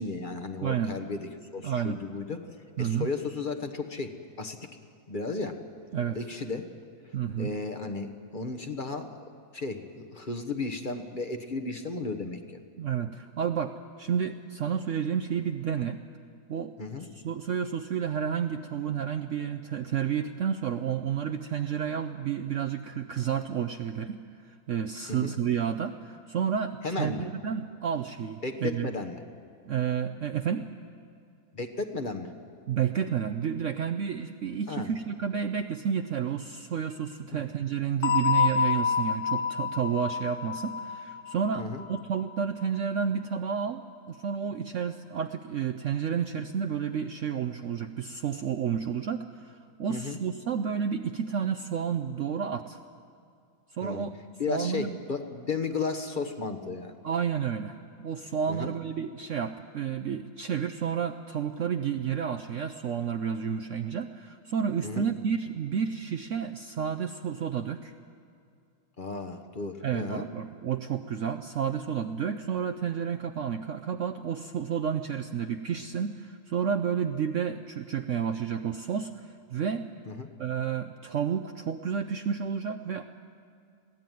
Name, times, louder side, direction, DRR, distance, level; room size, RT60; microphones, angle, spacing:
voice 1, 0.0-2.4 2.8-4.7 5.1-5.6 6.1-6.7 7.4-9.1 9.5-12.6 16.8-17.1 25.1-25.3 26.8-27.3 28.4-29.2 31.5-32.3 34.7-34.9 37.3-37.4 41.5-41.8 49.9-50.2 53.8-54.0 54.4-56.9 58.5-58.7 64.8-65.1 69.0-70.3 80.1-80.3, left 3 dB, 35° left, 6 dB, 1.2 m, -34 dB
voice 2, 0.6-0.9 1.6-2.0 2.8-3.1 5.9-6.2 7.1-7.5 12.8-16.0 16.5-24.2 24.7-28.9 29.6-30.7 32.7-52.8 53.7-54.1 54.5-55.0 57.0-67.9 69.8-79.9 80.4-83.0, right 7 dB, 60° right, 7 dB, 0.9 m, -31 dB
sound 1, 38.0-42.7, left 7 dB, 70° left, 1.3 m, -28 dB
21.5 x 16.0 x 9.3 m, 2.4 s
omnidirectional pair, 1.8 m